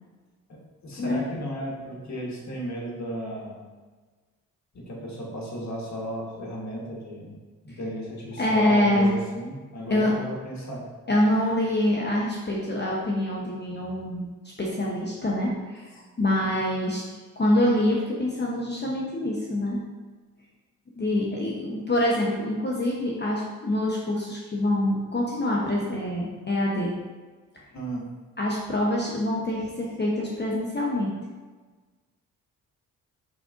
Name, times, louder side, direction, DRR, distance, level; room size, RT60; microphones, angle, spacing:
voice 1, 0.8-3.6 4.7-7.4 7.6-10.9 27.7-28.1, equal, 45° left, -3 dB, 1.5 m, -34 dB
voice 2, 8.4-9.1 9.9-10.1 11.1-14.3 14.6-15.9 16.2-17.0 17.4-19.8 21.0-26.9 28.4-31.1, left 1 dB, 30° left, -3 dB, 0.9 m, -25 dB
5.1 x 3.6 x 2.5 m, 1.4 s
supercardioid pair, 55°, 38 cm